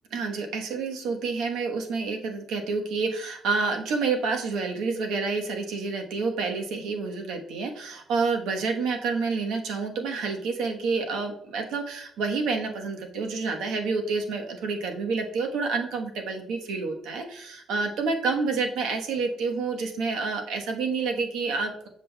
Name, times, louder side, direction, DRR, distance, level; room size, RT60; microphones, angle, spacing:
voice 1, 0.1-21.9, right 4 dB, 85° right, 3 dB, 1.1 m, -28 dB
7.5 x 6.1 x 2.2 m, 0.70 s
cardioid pair, 135°, 0 cm